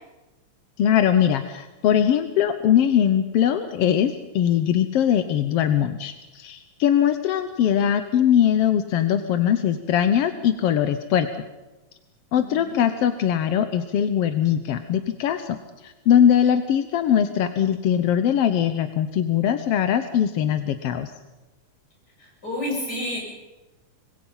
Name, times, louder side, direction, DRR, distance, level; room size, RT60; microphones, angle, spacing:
voice 1, 0.8-11.3 12.3-21.1, left 9 dB, 65° left, 9 dB, 1.6 m, -21 dB
voice 2, 12.4-12.8 22.2-23.2, left 1 dB, 30° left, -1 dB, 8.4 m, -30 dB
26.0 x 21.5 x 5.6 m, 1.1 s
omnidirectional pair, 3.6 m